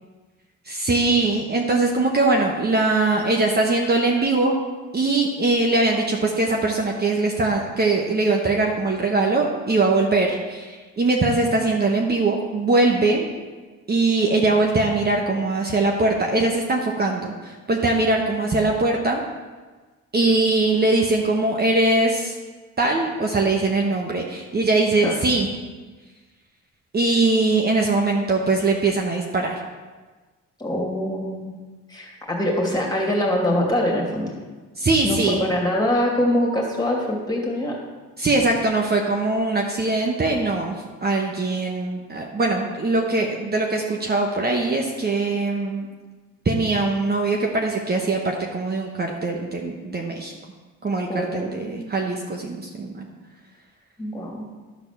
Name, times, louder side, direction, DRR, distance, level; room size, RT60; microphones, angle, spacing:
voice 1, 0.7-4.6 4.9-13.3 13.9-19.2 20.1-22.3 22.8-25.5 26.9-29.6 34.8-35.4 38.2-40.7 41.0-45.9 46.4-50.4 50.8-53.1, right 2 dB, 30° right, 1 dB, 1.1 m, -21 dB
voice 2, 30.6-31.6 31.9-34.3 35.0-37.8 51.1-51.9 54.0-54.5, left 1 dB, 15° left, -2 dB, 2.6 m, -24 dB
11.5 x 4.1 x 6.7 m, 1.3 s
cardioid pair, 90°, 30 cm